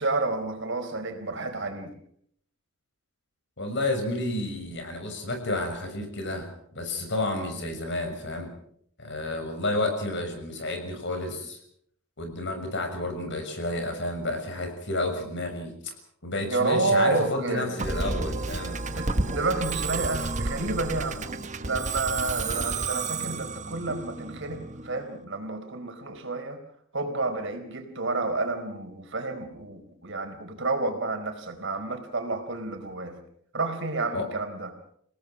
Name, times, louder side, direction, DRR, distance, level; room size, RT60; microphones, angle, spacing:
voice 1, 0.0-2.0 16.5-17.8 18.8-21.3 21.6-26.6 26.9-33.2 33.5-34.7, right 3 dB, 60° right, 6 dB, 4.1 m, -30 dB
voice 2, 3.6-8.5 9.0-11.6 12.2-15.9 16.2-18.8 34.1-34.3, left 2 dB, 60° left, 6 dB, 6.5 m, -31 dB
Musical instrument, 17.8-25.1, right 3 dB, 35° right, 1.3 m, -31 dB
29.5 x 18.0 x 6.1 m, 0.68 s
head